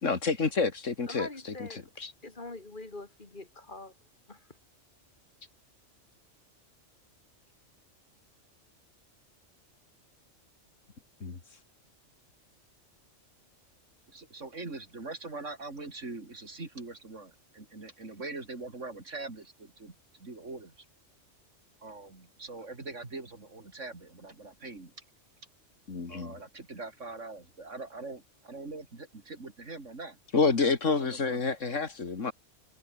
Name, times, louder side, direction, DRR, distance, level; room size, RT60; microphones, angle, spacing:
voice 1, 0.0-2.1 11.2-11.4 25.9-26.3 30.3-32.3, left 4 dB, 80° left, 2.6 m, -29 dB
voice 2, 1.1-1.8 2.2-3.9 4.3-4.4, left 2 dB, 40° left, 2.8 m, -43 dB
voice 3, 14.1-20.9 21.8-24.9 26.1-30.2 30.9-31.8, right 3 dB, 75° right, 3.9 m, -43 dB
omnidirectional pair, 1.3 m